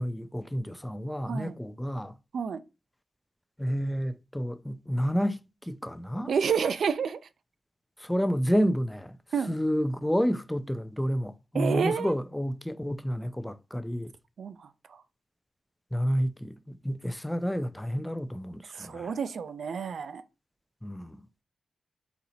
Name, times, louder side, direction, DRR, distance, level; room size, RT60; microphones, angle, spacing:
voice 1, 0.0-2.2 3.6-6.3 8.0-9.2 9.5-14.1 15.9-19.1 20.8-21.2, equal, 5° left, 0.3 m, -30 dB
voice 2, 1.2-1.6 2.3-2.6 6.3-7.3 9.3-9.6 11.5-12.1 14.4-15.0 18.7-20.2, right 6 dB, 70° right, 0.4 m, -30 dB
4.1 x 2.8 x 4.1 m
wide cardioid pair, 110°, 0 cm